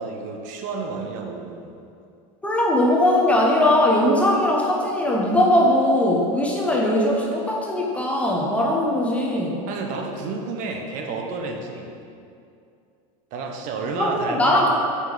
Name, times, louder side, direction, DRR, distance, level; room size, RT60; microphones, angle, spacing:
voice 1, 0.0-1.7 9.7-11.9 13.3-14.7, right 3 dB, 45° right, 2 dB, 0.8 m, -30 dB
voice 2, 2.4-9.6 14.0-14.7, left 1 dB, 5° left, -2 dB, 0.8 m, -20 dB
8.2 x 5.3 x 3.9 m, 2.5 s
supercardioid pair, 145°, 18 cm